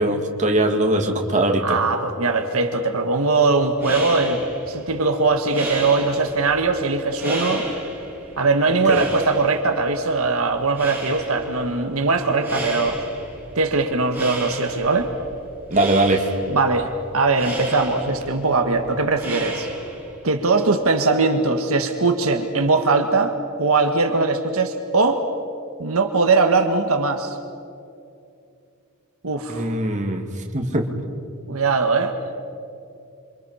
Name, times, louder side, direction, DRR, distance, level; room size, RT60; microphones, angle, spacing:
voice 1, 0.0-1.6 8.9-9.0 15.7-16.3 29.5-30.2 30.5-30.9, right 1 dB, 35° right, 2 dB, 2.3 m, -20 dB
voice 2, 1.6-4.4 4.7-7.7 8.4-13.0 13.5-15.1 16.5-19.7 20.2-25.2 25.8-27.4 29.2-29.8 31.5-32.1, right 3 dB, 75° right, 5 dB, 1.5 m, -20 dB
sound 1, 3.6-20.2, right 1 dB, 10° right, 6.4 m, -34 dB
27.5 x 26.0 x 5.7 m, 2.6 s
head